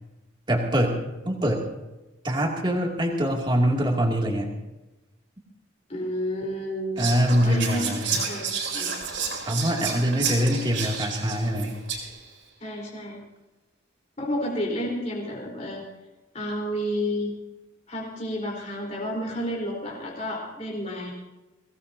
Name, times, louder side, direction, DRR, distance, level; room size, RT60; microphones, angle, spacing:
voice 1, 0.5-1.0 1.3-1.6 2.2-4.5 7.0-8.1 9.5-11.8, equal, 25° right, 0 dB, 2.5 m, -24 dB
voice 2, 5.9-7.1 7.3-8.9 10.4-10.5 12.6-13.2 14.2-15.8 16.3-17.3 17.9-21.1, equal, 35° left, -2 dB, 3.9 m, -31 dB
Whispering, 7.0-12.3, right 6 dB, 70° right, 4.4 m, -31 dB
23.0 x 17.5 x 2.7 m, 1.1 s
head